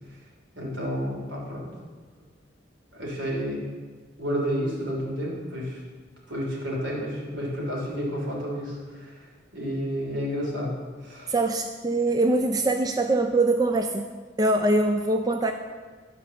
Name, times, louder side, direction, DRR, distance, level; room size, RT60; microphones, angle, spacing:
voice 1, 0.5-1.7 2.9-3.6 4.2-5.8 6.3-11.3, equal, 75° right, -3 dB, 3.1 m, -31 dB
voice 2, 11.3-14.1 14.4-15.5, right 2 dB, 20° right, 6 dB, 0.3 m, -23 dB
11.5 x 4.6 x 6.9 m, 1.5 s
head